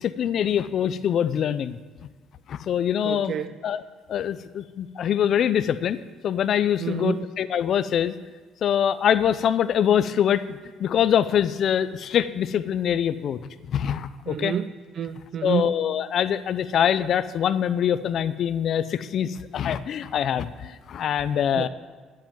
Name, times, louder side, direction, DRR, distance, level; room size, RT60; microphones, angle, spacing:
voice 1, 0.0-1.8 2.5-3.3 3.6-3.8 4.1-6.0 6.2-8.1 8.6-13.4 13.7-14.5 15.4-21.7, left 9 dB, 60° left, 13 dB, 0.6 m, -24 dB
voice 2, 3.0-3.5 6.8-7.3 14.3-15.7 21.6-21.7, right 8 dB, 55° right, 11 dB, 0.5 m, -29 dB
10.5 x 7.5 x 9.2 m, 1.4 s
cardioid pair, 90°, 0 cm